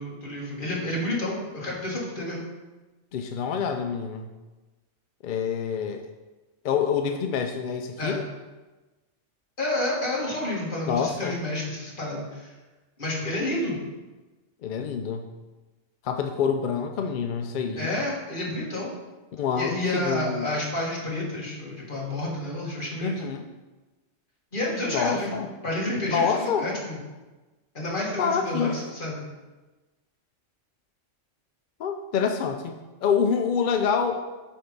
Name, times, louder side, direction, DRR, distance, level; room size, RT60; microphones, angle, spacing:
voice 1, 0.0-2.4 8.0-8.2 9.6-12.5 13.0-13.8 17.8-18.9 19.6-23.1 24.5-25.3 25.6-27.0 27.7-29.2, left 1 dB, 45° left, -5 dB, 2.0 m, -30 dB
voice 2, 3.1-4.3 5.2-6.1 6.6-8.2 10.9-11.4 14.6-15.3 16.0-18.0 19.3-20.5 23.0-23.5 24.9-25.5 26.1-26.7 28.2-28.8 31.8-32.7 33.0-34.2, left 6 dB, 65° left, 5 dB, 0.5 m, -27 dB
8.5 x 3.4 x 5.2 m, 1.2 s
omnidirectional pair, 1.3 m